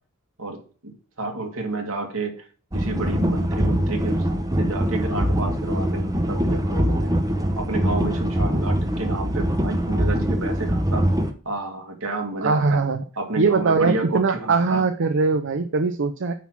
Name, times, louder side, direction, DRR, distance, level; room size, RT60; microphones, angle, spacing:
voice 1, 1.2-2.4 2.7-4.2 4.6-7.2 7.6-11.1 11.4-12.8 13.2-14.8, right 3 dB, 80° right, 3 dB, 2.2 m, -30 dB
sound 1, 2.7-11.3, equal, 15° right, 0.8 m, -23 dB
voice 2, 12.4-13.0 13.4-16.3, right 4 dB, 60° right, 8 dB, 0.6 m, -21 dB
9.4 x 4.1 x 6.0 m, 0.40 s
head